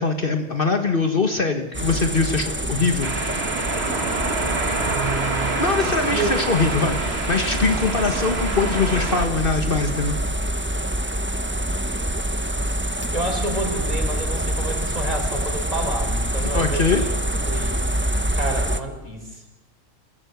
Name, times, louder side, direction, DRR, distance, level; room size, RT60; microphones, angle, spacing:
voice 1, 0.0-3.1 5.6-10.2 16.5-17.0, left 4 dB, 45° left, 6 dB, 1.6 m, -22 dB
sound 1, 1.7-18.8, right 1 dB, 10° right, 1.0 m, -26 dB
sound 2, 3.0-9.3, right 3 dB, 50° right, 2.2 m, -27 dB
voice 2, 4.7-6.4 13.1-17.2 17.4-17.8 18.3-19.4, right 1 dB, 30° right, 3 dB, 4.9 m, -29 dB
28.0 x 17.0 x 8.1 m, 0.99 s
omnidirectional pair, 1.3 m